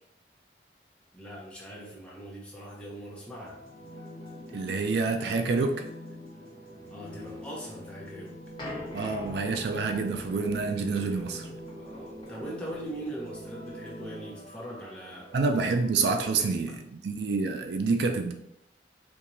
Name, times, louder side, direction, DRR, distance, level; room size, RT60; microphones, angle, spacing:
voice 1, 1.1-3.6 6.9-8.3 11.7-15.3 16.1-16.7, right 1 dB, 5° left, -5 dB, 0.9 m, -41 dB
sound 1, 3.5-16.1, equal, 35° right, 1.0 m, -45 dB
voice 2, 4.5-5.8 8.9-11.5 15.3-18.3, right 4 dB, 70° right, 6 dB, 0.4 m, -27 dB
sound 2, 8.6-14.0, left 1 dB, 25° left, 1.0 m, -44 dB
4.5 x 2.9 x 2.6 m, 0.75 s
head